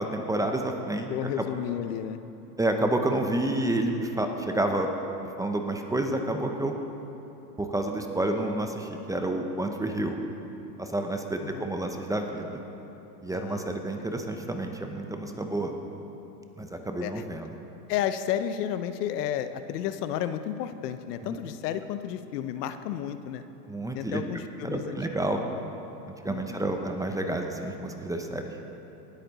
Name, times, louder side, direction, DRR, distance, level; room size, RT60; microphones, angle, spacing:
voice 1, 0.0-1.3 2.6-4.9 5.4-6.7 7.6-10.2 10.8-12.6 13.2-15.7 16.6-17.5 21.2-21.4 23.7-24.2 24.6-25.4 26.1-28.5, right 1 dB, 5° right, 4 dB, 0.6 m, -29 dB
voice 2, 1.1-2.2 11.4-11.7 13.3-13.8 17.0-17.2 17.9-23.4 23.9-25.0 25.3-25.7 26.3-26.7, left 10 dB, 75° left, 11 dB, 0.8 m, -32 dB
19.0 x 8.5 x 4.1 m, 2.9 s
supercardioid pair, 120°, 48 cm